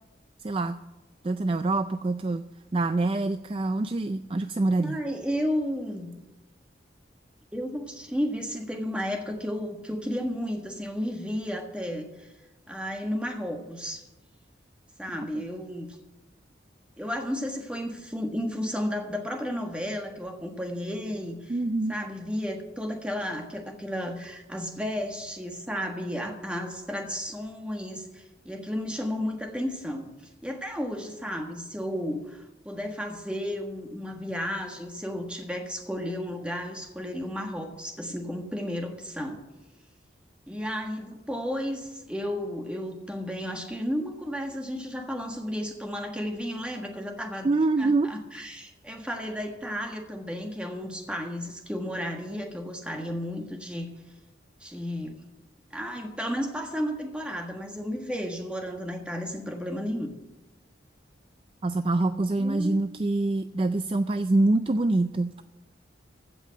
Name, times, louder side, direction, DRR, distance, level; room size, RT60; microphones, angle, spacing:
voice 1, 0.4-0.8 1.2-2.5 2.7-5.0 21.5-22.0 47.4-48.1 61.6-65.3, right 2 dB, 30° right, 10 dB, 0.3 m, -25 dB
voice 2, 4.8-6.1 7.5-12.3 12.7-14.0 15.0-16.0 17.0-21.5 21.9-30.1 30.4-39.4 40.5-47.5 47.8-53.9 54.6-55.2 55.7-60.1 62.3-62.8, equal, 5° right, 2 dB, 1.5 m, -33 dB
15.5 x 5.5 x 9.8 m, 1.0 s
head